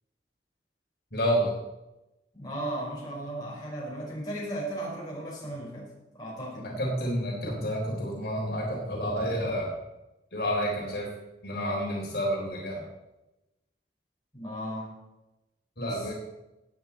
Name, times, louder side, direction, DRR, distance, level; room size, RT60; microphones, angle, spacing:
voice 1, 1.1-1.5 6.6-9.7 10.3-11.1 11.4-12.8 15.8-16.1, equal, 65° left, -2 dB, 3.8 m, -29 dB
voice 2, 2.3-5.8 6.1-6.8 14.3-14.9, right 1 dB, 25° left, -5 dB, 5.1 m, -35 dB
17.5 x 8.9 x 4.4 m, 0.99 s
head